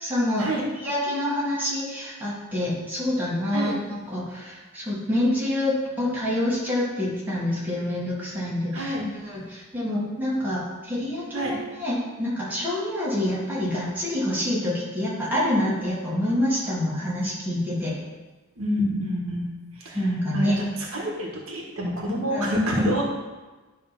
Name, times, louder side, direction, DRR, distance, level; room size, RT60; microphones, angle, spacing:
voice 1, 0.0-0.5 0.8-17.9 19.9-20.6 22.3-22.5, left 1 dB, 10° right, -8 dB, 2.3 m, -27 dB
voice 2, 8.7-9.1 11.3-11.6 18.6-19.4 19.8-20.0 20.3-20.6 20.9-23.0, equal, 75° right, -2 dB, 1.7 m, -27 dB
10.5 x 3.6 x 5.9 m, 1.2 s
head